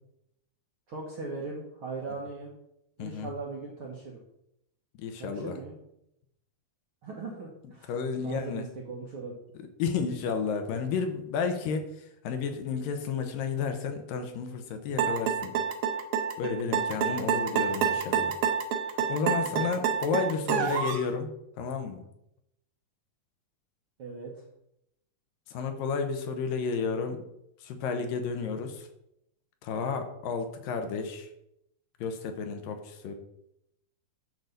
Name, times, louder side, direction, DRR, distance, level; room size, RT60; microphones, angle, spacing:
voice 1, 0.9-2.5 3.0-4.2 5.2-5.8 7.0-8.0 8.2-9.3 17.1-17.9 19.4-19.7 20.5-20.9 24.0-24.3, right 3 dB, 65° right, -2 dB, 1.3 m, -40 dB
voice 2, 3.0-3.3 5.0-5.6 7.9-8.7 9.8-11.8 12.2-15.6 16.4-18.3 19.1-22.0 25.5-27.2 27.6-28.9 29.6-31.3 32.0-33.1, left 5 dB, 75° left, 6 dB, 2.5 m, -32 dB
sound 1, 15.0-21.1, right 7 dB, 85° right, 2.8 m, -28 dB
10.5 x 4.1 x 6.6 m, 0.80 s
omnidirectional pair, 4.4 m